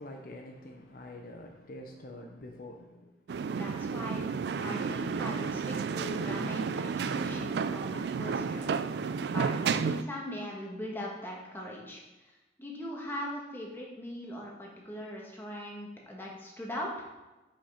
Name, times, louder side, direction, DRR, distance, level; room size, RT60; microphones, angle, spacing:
voice 1, 0.0-3.1, left 1 dB, 50° left, 0.6 m, -46 dB
sound 1, 3.3-10.0, right 5 dB, 65° right, 0.3 m, -32 dB
voice 2, 3.6-8.7 9.3-17.1, equal, 10° left, 1.3 m, -40 dB
5.7 x 5.2 x 5.7 m
head